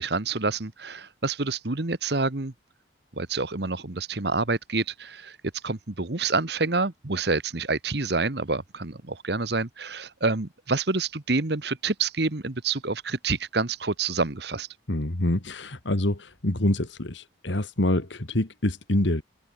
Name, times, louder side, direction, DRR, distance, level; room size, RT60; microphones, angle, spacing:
voice 1, 0.0-2.5 3.1-5.4 5.6-14.7, right 3 dB, 60° right, 1.4 m, -27 dB
voice 2, 14.9-19.2, left 1 dB, 75° left, 2.2 m, -26 dB
open air
head